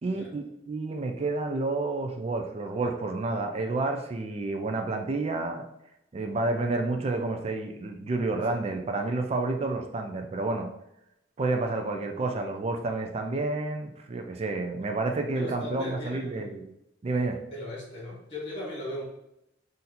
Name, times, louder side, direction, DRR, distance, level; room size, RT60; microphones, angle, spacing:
voice 1, 0.0-5.7 6.1-10.7 11.4-16.7 17.0-17.4, right 3 dB, 35° right, 5 dB, 0.4 m, -30 dB
voice 2, 15.3-16.5 17.5-19.0, left 1 dB, 35° left, -4 dB, 1.6 m, -37 dB
4.2 x 2.6 x 4.0 m, 0.84 s
head